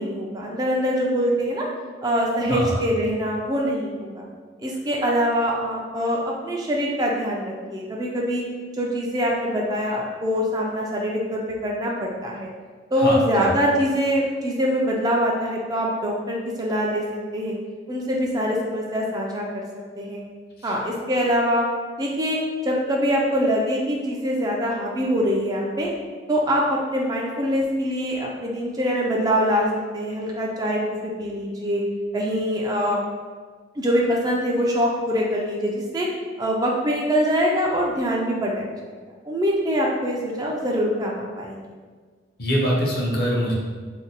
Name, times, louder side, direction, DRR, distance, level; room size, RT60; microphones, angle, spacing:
voice 1, 0.0-1.7 2.0-4.2 4.6-8.4 8.8-12.5 12.9-17.0 17.3-17.5 17.9-19.6 20.0-20.2 20.6-21.6 22.0-22.4 22.6-25.9 26.3-31.8 32.1-33.0 33.8-36.1 36.4-39.0 39.3-41.6, equal, 20° right, -2 dB, 0.3 m, -24 dB
voice 2, 2.5-2.8 12.9-13.5 20.6-20.7 42.4-43.5, equal, 55° left, -3 dB, 0.7 m, -24 dB
2.6 x 2.1 x 3.9 m, 1.5 s
head